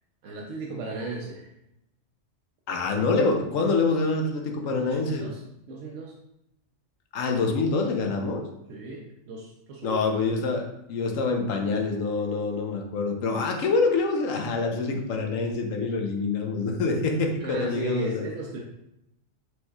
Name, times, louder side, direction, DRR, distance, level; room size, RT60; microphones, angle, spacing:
voice 1, 0.2-1.5 4.6-5.4 5.7-6.2 8.7-10.0 17.4-18.6, right 3 dB, 80° right, -1 dB, 1.0 m, -35 dB
voice 2, 2.7-5.2 7.1-8.4 9.8-18.2, left 3 dB, 90° left, 3 dB, 1.1 m, -26 dB
4.6 x 4.4 x 2.3 m, 0.84 s
omnidirectional pair, 1.3 m